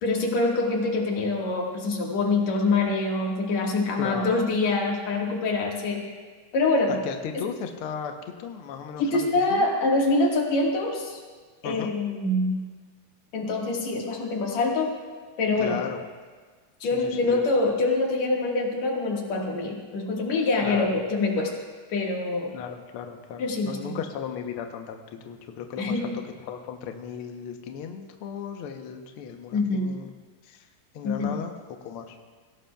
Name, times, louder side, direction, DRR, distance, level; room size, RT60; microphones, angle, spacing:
voice 1, 0.0-6.0 6.5-7.0 9.0-11.2 11.6-12.6 13.3-15.0 15.4-15.8 16.8-21.5 21.9-22.5 23.4-24.0 25.8-26.2 29.5-30.0 31.0-31.4, left 3 dB, 60° left, -1 dB, 2.9 m, -25 dB
voice 2, 4.0-4.4 7.0-8.1 8.4-9.7 11.6-11.9 15.6-16.0 16.9-17.4 20.6-21.0 22.5-30.1 30.4-30.6 30.9-31.5 31.8-32.3, left 7 dB, 85° left, 4 dB, 1.2 m, -36 dB
21.5 x 17.0 x 2.3 m, 1.5 s
omnidirectional pair, 3.8 m